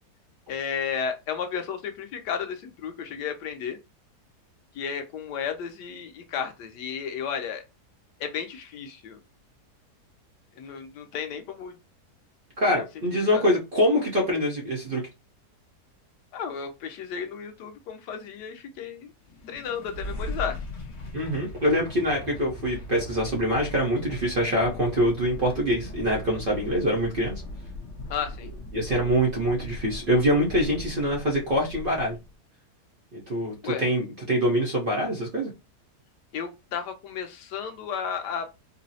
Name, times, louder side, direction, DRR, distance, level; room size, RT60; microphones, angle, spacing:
voice 1, 0.5-3.8 4.7-7.6 8.2-9.2 10.6-11.7 13.3-13.4 16.3-19.1 19.5-20.6 28.1-28.5 33.6-33.8 36.3-38.5, left 7 dB, 90° left, 1.3 m, -33 dB
voice 2, 12.6-15.0 21.1-27.3 28.7-32.2 33.1-35.5, equal, 45° right, 0.8 m, -24 dB
sound 1, 19.2-32.3, left 1 dB, 55° left, 1.1 m, -39 dB
3.9 x 2.0 x 2.7 m
omnidirectional pair, 1.8 m